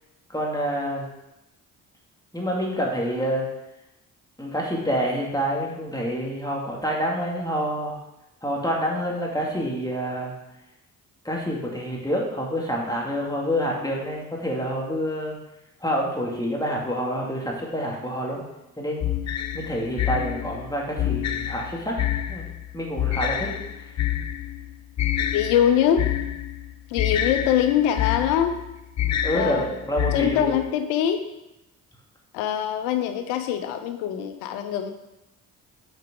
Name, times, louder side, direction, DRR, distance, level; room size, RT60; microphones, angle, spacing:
voice 1, 0.3-1.1 2.3-3.5 4.4-8.0 8.4-10.3 11.2-15.4 15.8-18.4 18.8-19.2 19.5-22.0 22.3-23.5 29.2-30.5, equal, 10° left, -2 dB, 2.2 m, -27 dB
sound 1, 19.0-30.7, left 11 dB, 45° left, 0.6 m, -28 dB
voice 2, 25.3-26.1 26.9-28.6 29.3-29.8 30.1-31.2 32.3-34.9, left 10 dB, 90° left, 7 dB, 0.6 m, -23 dB
7.9 x 4.6 x 3.7 m, 0.93 s
hypercardioid pair, 45°, 40 cm